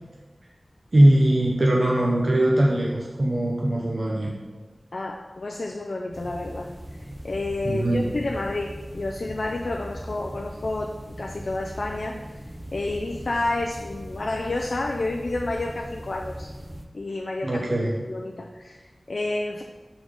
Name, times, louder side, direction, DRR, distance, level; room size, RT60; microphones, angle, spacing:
voice 1, 0.9-4.3 7.6-8.1 17.4-18.0, right 1 dB, 50° right, -2 dB, 0.7 m, -21 dB
voice 2, 4.9-6.7 7.2-12.2 12.7-16.5 16.9-17.6 18.1-19.6, left 2 dB, 70° left, 1 dB, 0.4 m, -30 dB
sound 1, 6.1-16.9, equal, 10° right, 0.5 m, -39 dB
6.2 x 3.9 x 5.0 m, 1.3 s
wide cardioid pair, 75°, 0 cm